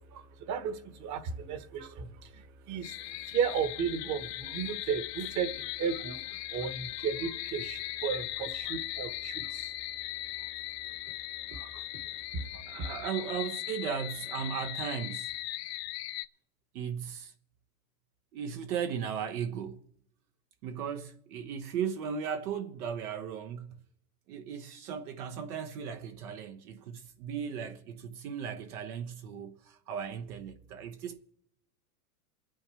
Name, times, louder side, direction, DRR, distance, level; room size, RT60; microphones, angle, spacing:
voice 1, 0.0-9.7 11.5-12.0 12.3-12.9, right 6 dB, 35° right, 1.5 m, -35 dB
sound 1, 2.8-16.3, left 16 dB, 75° left, 0.8 m, -39 dB
voice 2, 12.7-15.4 16.7-17.3 18.3-19.9 20.6-23.8 24.3-31.2, right 7 dB, 65° right, 1.2 m, -37 dB
27.5 x 9.5 x 3.4 m
hypercardioid pair, 125°, 48 cm